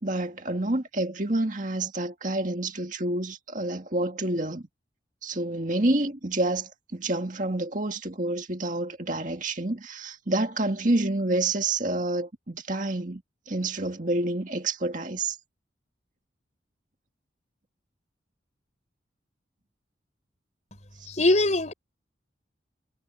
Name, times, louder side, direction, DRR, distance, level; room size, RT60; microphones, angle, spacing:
voice 1, 0.0-4.6 5.2-13.2 13.5-15.4, right 2 dB, 45° right, 2.0 m, -28 dB
voice 2, 21.1-21.7, left 2 dB, 40° left, 4.8 m, -22 dB
head